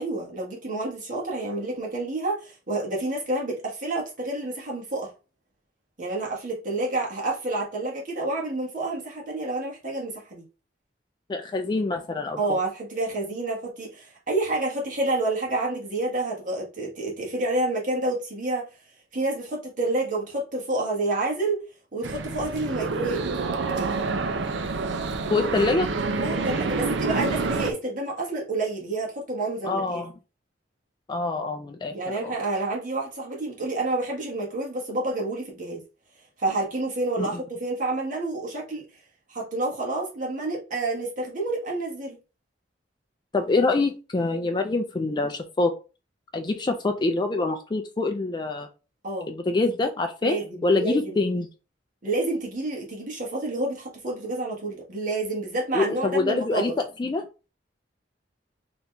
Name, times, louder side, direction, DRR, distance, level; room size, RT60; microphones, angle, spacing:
voice 1, 0.0-5.1 6.0-10.4 12.4-18.7 19.1-21.6 21.9-23.2 26.2-30.0 31.9-35.8 36.4-38.8 39.3-42.2 49.0-49.3 50.2-51.2 52.0-56.7, right 2 dB, 45° right, 1.4 m, -29 dB
voice 2, 11.3-12.4 25.3-25.9 29.6-30.1 31.1-31.9 32.2-32.3 37.2-37.4 43.3-45.7 46.3-48.7 49.3-51.5 55.7-56.7 57.0-57.2, left 3 dB, 25° left, 0.4 m, -25 dB
sound 1, 22.0-27.7, right 4 dB, 85° right, 0.5 m, -27 dB
4.0 x 2.9 x 3.3 m
head